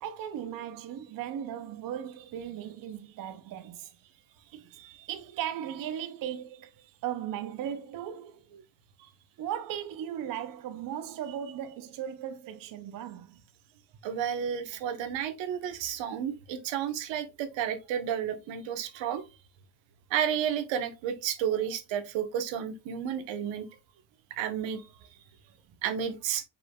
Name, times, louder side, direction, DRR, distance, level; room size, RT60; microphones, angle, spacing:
voice 1, 0.0-3.9 4.4-8.4 9.4-13.4, right 10 dB, 45° right, 0.6 m, -37 dB
voice 2, 14.0-19.2 20.1-23.7 24.3-24.8 25.8-26.4, right 9 dB, 70° right, 1.1 m, -31 dB
5.3 x 4.2 x 2.3 m
cardioid pair, 110°, 46 cm